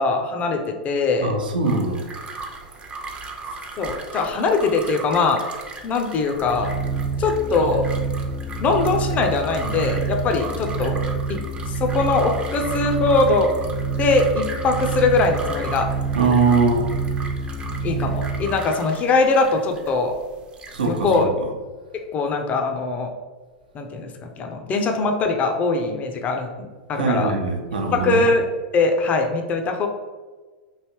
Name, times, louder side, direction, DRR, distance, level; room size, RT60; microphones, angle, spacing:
voice 1, 0.0-1.3 3.8-5.4 5.8-6.7 7.2-7.8 8.6-11.0 11.3-11.4 11.7-13.5 14.0-15.9 17.8-20.1 20.8-21.3 22.1-23.1 23.7-27.3 27.9-28.4 28.7-29.9, left 3 dB, 30° left, 4 dB, 0.5 m, -21 dB
voice 2, 1.2-2.0 16.1-16.9 20.7-21.2 27.0-28.2, right 4 dB, 75° right, 2 dB, 0.6 m, -21 dB
sound 1, 1.6-21.2, right 3 dB, 20° right, 0.5 m, -38 dB
sound 2, 6.4-18.5, right 4 dB, 65° left, 0.7 m, -27 dB
3.2 x 2.7 x 3.0 m, 1.3 s
hypercardioid pair, 95°, 5 cm